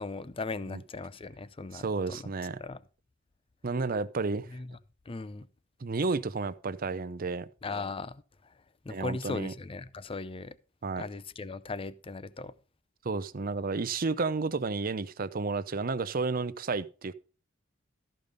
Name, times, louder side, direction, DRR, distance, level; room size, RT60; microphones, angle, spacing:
voice 1, 0.0-2.3 2.6-2.8 4.5-4.8 5.1-5.5 7.6-8.2 8.8-10.6 11.0-12.5, left 3 dB, 30° left, 0.5 m, -38 dB
voice 2, 1.7-2.6 3.6-4.5 5.8-7.5 8.9-9.5 10.8-11.0 13.0-17.1, right 4 dB, 50° right, 0.6 m, -31 dB
13.5 x 5.2 x 5.2 m
head